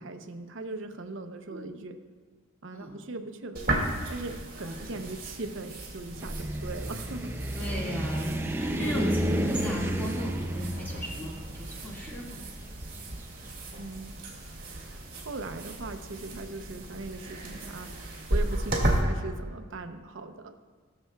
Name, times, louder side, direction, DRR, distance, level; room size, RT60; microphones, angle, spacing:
voice 1, 0.0-2.0 2.6-3.6 4.1-7.3 8.7-8.9 13.8-14.1 14.6-20.5, right 3 dB, 65° right, 6 dB, 0.7 m, -40 dB
sound 1, 3.5-19.0, right 1 dB, 40° right, 2.0 m, -35 dB
voice 2, 4.6-5.0 7.5-12.5, equal, 10° left, -5 dB, 1.9 m, -36 dB
sound 2, 6.2-13.3, right 1 dB, 10° right, 0.4 m, -31 dB
19.5 x 6.6 x 2.3 m, 1.5 s
head